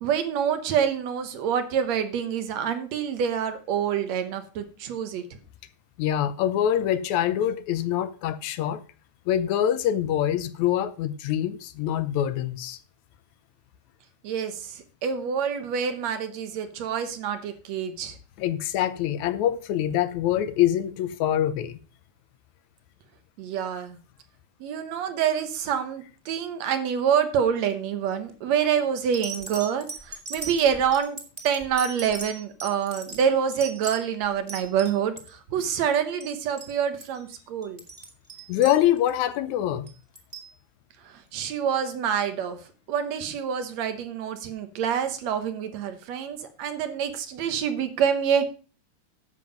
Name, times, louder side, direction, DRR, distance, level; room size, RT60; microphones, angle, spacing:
voice 1, 0.0-5.2 14.2-18.2 23.4-24.0 24.6-31.2 31.4-37.8 41.0-42.6 42.9-48.5, right 8 dB, 65° right, 2.2 m, -27 dB
voice 2, 6.0-8.8 9.3-12.8 18.4-21.8 38.5-39.9, left 11 dB, 75° left, 2.1 m, -25 dB
sound 1, 28.3-28.6 29.1-35.3 35.6-36.0 36.2-36.3 36.6-36.7 37.0-37.2 37.6-39.2 39.9-40.5 41.4-41.5, right 3 dB, 15° right, 1.7 m, -39 dB
11.0 x 7.5 x 5.1 m
omnidirectional pair, 3.4 m